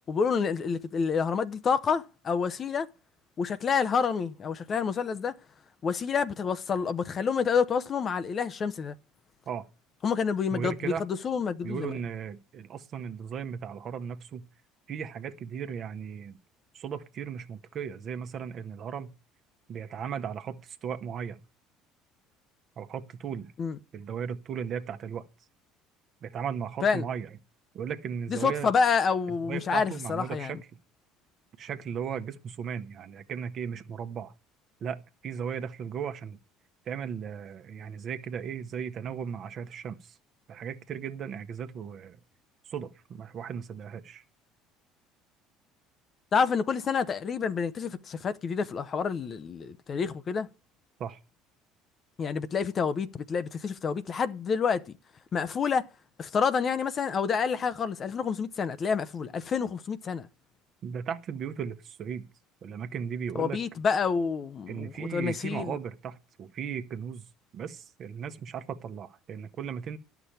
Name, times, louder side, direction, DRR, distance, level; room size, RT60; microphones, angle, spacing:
voice 1, 0.1-2.9 3.4-5.4 5.8-8.9 10.0-12.0 23.6-23.8 26.8-27.1 28.3-30.6 46.3-50.5 52.2-54.9 55.3-55.9 56.2-60.3 63.3-65.7, left 6 dB, 40° left, 0.8 m, -28 dB
voice 2, 10.5-11.0 11.6-14.4 14.9-16.4 16.7-19.1 19.7-21.4 22.8-23.5 23.9-25.2 26.2-27.3 27.7-28.7 29.4-30.6 31.6-34.3 34.8-36.4 36.9-40.1 40.5-42.2 42.7-44.2 51.0-51.2 60.8-62.3 62.6-63.6 64.7-67.3 67.5-70.0, right 7 dB, 45° right, 1.1 m, -36 dB
11.0 x 6.1 x 8.6 m
figure-of-eight pair, 60°, 0 cm